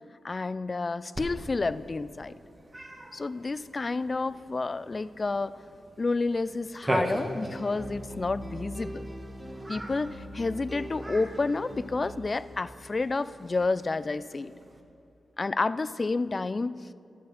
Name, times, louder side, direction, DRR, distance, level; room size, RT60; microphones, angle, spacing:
voice 1, 0.2-2.3 3.1-5.6 6.0-9.1 9.7-14.5 15.4-16.8, left 3 dB, 40° left, 16 dB, 0.3 m, -30 dB
Cat, 1.1-14.8, right 1 dB, 25° right, 1.3 m, -40 dB
sound 1, 7.0-12.1, equal, 5° right, 1.2 m, -41 dB
11.0 x 6.9 x 5.1 m, 2.6 s
supercardioid pair, 50°, 0 cm